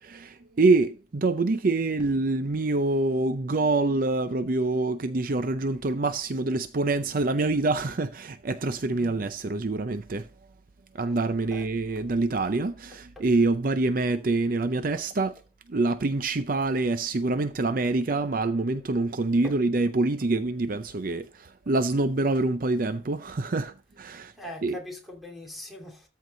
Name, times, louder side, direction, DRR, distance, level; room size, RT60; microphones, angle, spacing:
voice 1, 0.0-10.3 10.9-15.3 15.7-24.3 24.6-24.8, right 3 dB, 50° right, 0.6 m, -26 dB
voice 2, 24.4-26.1, left 1 dB, ahead, 2.8 m, -41 dB
13.5 x 4.7 x 3.8 m
head